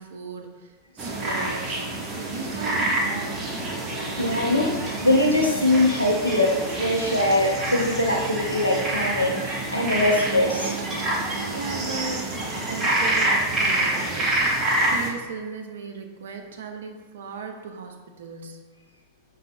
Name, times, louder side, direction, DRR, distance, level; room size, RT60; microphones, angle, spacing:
voice 1, 0.0-1.9 2.1-3.4 11.5-14.5 14.9-18.6, right 5 dB, 65° right, 4 dB, 0.4 m, -37 dB
sound 1, 1.0-15.1, right 2 dB, 25° right, 0.7 m, -27 dB
voice 2, 4.2-10.7, left 1 dB, 85° left, -1 dB, 0.5 m, -22 dB
5.1 x 2.0 x 2.5 m, 1.3 s
figure-of-eight pair, 90°, 0 cm